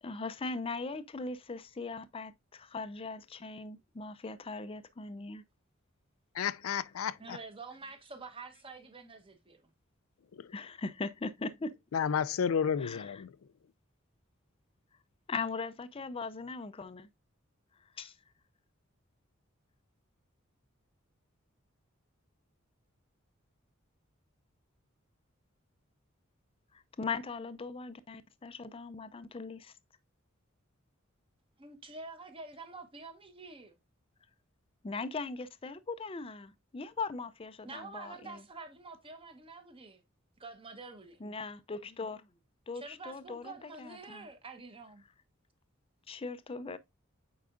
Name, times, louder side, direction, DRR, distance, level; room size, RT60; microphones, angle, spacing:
voice 1, 0.0-5.4 10.5-11.8 12.8-13.2 15.3-17.1 17.8-18.2 26.7-29.7 34.8-38.4 41.2-42.3 42.7-44.3 46.1-46.8, left 4 dB, 25° left, 0.5 m, -40 dB
voice 2, 6.4-7.4 10.3-10.5 11.9-13.3, left 7 dB, 85° left, 0.4 m, -31 dB
voice 3, 7.2-9.7 31.6-33.7 37.6-40.0 40.4-41.2 42.7-45.0, right 3 dB, 25° right, 1.1 m, -47 dB
8.4 x 4.7 x 2.5 m
head